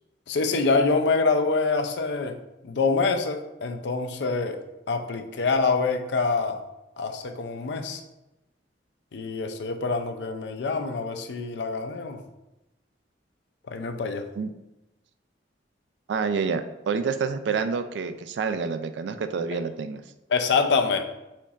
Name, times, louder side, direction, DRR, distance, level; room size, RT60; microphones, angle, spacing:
voice 1, 0.3-2.4 2.6-4.6 4.9-6.6 7.0-8.0 9.1-12.2 13.7-14.3 20.3-21.0, left 4 dB, 70° left, 5 dB, 0.4 m, -25 dB
voice 2, 16.1-20.0, right 5 dB, 75° right, 10 dB, 0.3 m, -28 dB
4.3 x 3.9 x 2.4 m, 0.96 s
head